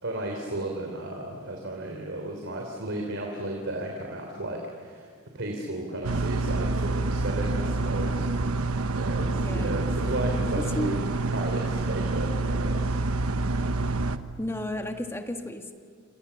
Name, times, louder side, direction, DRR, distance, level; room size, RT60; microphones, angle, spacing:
voice 1, 0.0-5.1 5.3-8.3 8.9-11.0 11.3-13.0, right 1 dB, 60° right, 1 dB, 3.6 m, -34 dB
sound 1, 6.0-14.2, right 2 dB, 90° right, 1.1 m, -27 dB
voice 2, 9.4-9.9 10.6-11.0 14.4-15.7, left 1 dB, 10° left, 5 dB, 1.7 m, -33 dB
29.0 x 27.0 x 7.1 m, 2.1 s
head